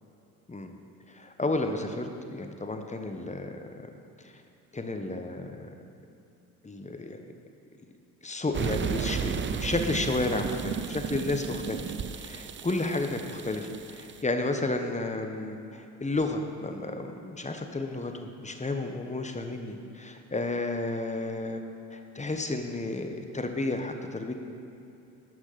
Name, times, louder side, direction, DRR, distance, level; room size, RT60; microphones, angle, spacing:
voice 1, 1.1-3.6 4.2-4.3 4.7-5.7 6.6-7.2 8.2-21.6 21.9-24.3, left 2 dB, 15° left, 5 dB, 1.2 m, -32 dB
sound 1, 8.5-14.2, right 7 dB, 30° right, 0.5 m, -34 dB
12.0 x 6.2 x 5.9 m, 2.8 s
hypercardioid pair, 60°, 41 cm